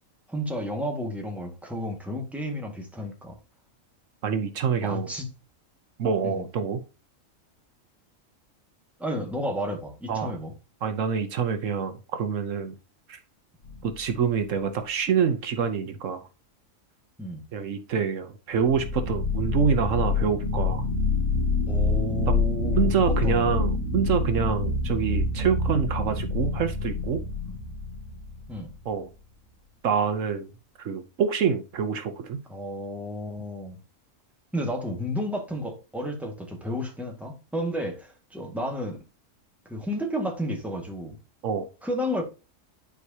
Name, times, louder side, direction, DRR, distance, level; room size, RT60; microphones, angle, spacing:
voice 1, 0.3-3.3 4.8-5.3 6.2-6.4 9.0-10.5 17.2-17.4 21.7-23.7 27.4-27.6 28.5-28.7 32.5-33.8 34.5-39.0 39.7-41.2 41.8-42.2, equal, ahead, 1.7 m, -32 dB
voice 2, 4.2-5.1 6.0-6.8 10.1-10.3 10.8-12.7 13.1-13.2 13.8-16.2 17.5-20.8 22.3-22.4 22.8-27.2 28.8-29.1 29.8-30.5 30.8-32.4 41.4-41.7, right 6 dB, 70° right, 1.2 m, -26 dB
sound 1, 13.6-14.2 18.5-28.7, left 3 dB, 65° left, 2.3 m, -27 dB
10.5 x 4.7 x 2.8 m
omnidirectional pair, 1.4 m